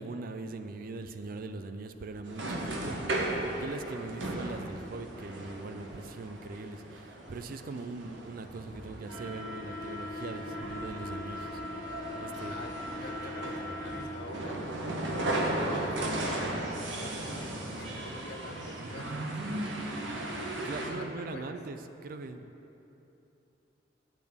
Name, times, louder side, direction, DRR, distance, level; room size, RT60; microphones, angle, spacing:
voice 1, 0.0-11.6 12.2-12.5 20.6-22.5, right 3 dB, 50° right, 8 dB, 0.4 m, -41 dB
sound 1, 2.3-20.9, right 1 dB, 80° right, 1.0 m, -36 dB
sound 2, 8.4-14.7, equal, 10° left, 2.0 m, -48 dB
voice 2, 12.5-14.9 15.5-17.5 17.8-20.0 20.7-21.5, left 2 dB, 60° left, 5 dB, 0.7 m, -47 dB
8.6 x 8.1 x 3.5 m, 3.0 s
head